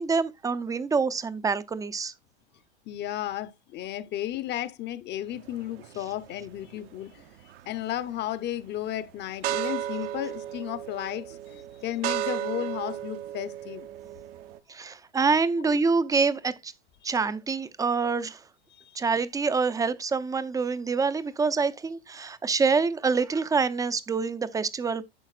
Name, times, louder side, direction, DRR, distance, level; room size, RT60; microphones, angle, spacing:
voice 1, 0.0-2.1 14.7-16.7 17.0-18.4 19.0-25.0, right 4 dB, 10° right, 0.5 m, -26 dB
voice 2, 2.9-7.3 7.7-13.9 15.6-15.8 17.0-17.2 18.7-19.0, left 12 dB, 30° left, 0.8 m, -34 dB
sound 1, 5.3-14.6, right 12 dB, 60° right, 0.8 m, -36 dB
11.0 x 7.1 x 2.5 m
hypercardioid pair, 105°, 35 cm